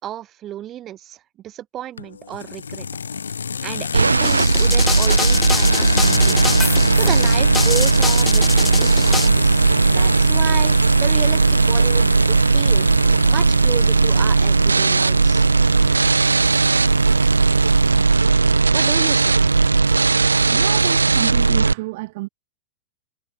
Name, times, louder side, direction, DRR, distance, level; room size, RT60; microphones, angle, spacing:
voice 1, 0.0-2.9 3.6-6.4 6.9-12.9 13.2-15.5 18.7-19.4, right 12 dB, 30° right, 7.1 m, -32 dB
sound 1, 2.0-18.7, left 6 dB, 80° left, 3.4 m, -29 dB
sound 2, 3.9-21.7, right 4 dB, 85° right, 1.6 m, -16 dB
sound 3, 4.2-9.3, left 4 dB, 15° left, 3.6 m, -26 dB
voice 2, 20.5-22.3, right 22 dB, 55° right, 3.1 m, -30 dB
figure-of-eight pair, 95°, 0 cm